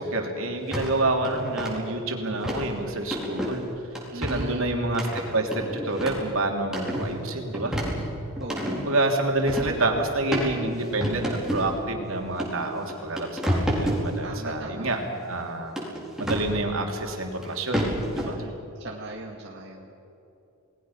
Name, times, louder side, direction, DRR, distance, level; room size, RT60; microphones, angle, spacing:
voice 1, 0.0-3.6 4.1-7.7 8.7-11.2 11.5-15.0 15.2-15.7 16.2-17.8 18.1-18.4, right 2 dB, 75° right, 2 dB, 3.3 m, -28 dB
sound 1, 0.7-0.9 1.2-1.7 2.4-2.7 3.1-3.6 3.9-4.5 4.9-6.3 6.6-7.1 7.5-8.8 9.5-9.8 10.3-10.5 11.0-11.7 12.4-12.5 12.9-14.0 15.8-16.5 17.4-17.5 17.7-18.3, equal, ahead, 4.4 m, -28 dB
voice 2, 4.1-4.7 8.4-8.9 14.2-14.9 18.2-19.9, right 1 dB, 55° right, -1 dB, 1.9 m, -38 dB
29.0 x 20.0 x 5.9 m, 2.8 s
head